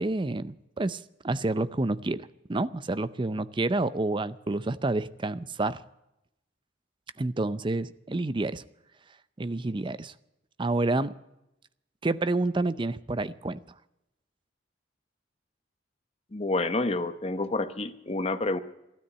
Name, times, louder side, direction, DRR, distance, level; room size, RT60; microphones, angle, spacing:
voice 1, 0.0-5.8 7.2-8.6 9.4-10.1 10.6-11.1 12.0-13.6, right 2 dB, 25° right, 15 dB, 0.5 m, -29 dB
voice 2, 16.3-18.6, left 2 dB, 35° left, 10 dB, 0.9 m, -28 dB
13.0 x 12.5 x 7.9 m, 0.88 s
head